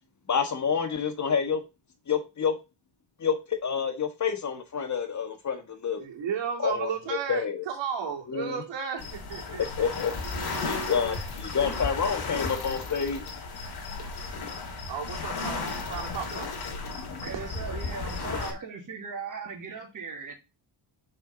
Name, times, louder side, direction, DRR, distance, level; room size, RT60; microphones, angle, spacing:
voice 1, 0.3-1.6 2.1-2.5 3.2-6.0 6.6-7.6 8.3-8.6 9.5-10.1 10.7-13.2 17.0-17.2, left 6 dB, 40° left, 1.6 m, -28 dB
voice 2, 6.0-9.9 10.3-11.2 14.9-16.5 17.3-17.4, right 7 dB, 70° right, 2.8 m, -34 dB
sound 1, 9.0-18.5, left 4 dB, 55° left, 2.9 m, -34 dB
voice 3, 17.1-20.3, right 5 dB, 45° right, 2.9 m, -38 dB
6.5 x 5.8 x 3.9 m
cardioid pair, 110°, 44 cm